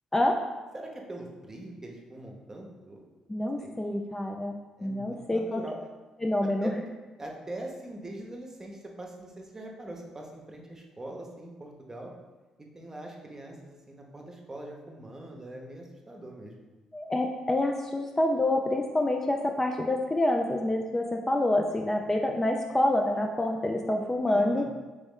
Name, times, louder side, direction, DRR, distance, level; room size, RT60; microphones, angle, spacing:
voice 1, 0.7-3.1 3.6-3.8 4.8-5.8 6.4-6.9 7.2-12.1 12.7-16.5 24.3-24.6, right 1 dB, 25° right, 0 dB, 0.8 m, -42 dB
voice 2, 3.3-5.6 6.2-6.7 16.9-24.6, left 1 dB, 20° left, 2 dB, 0.4 m, -27 dB
3.2 x 3.0 x 3.6 m, 1.2 s
hypercardioid pair, 50°, 2 cm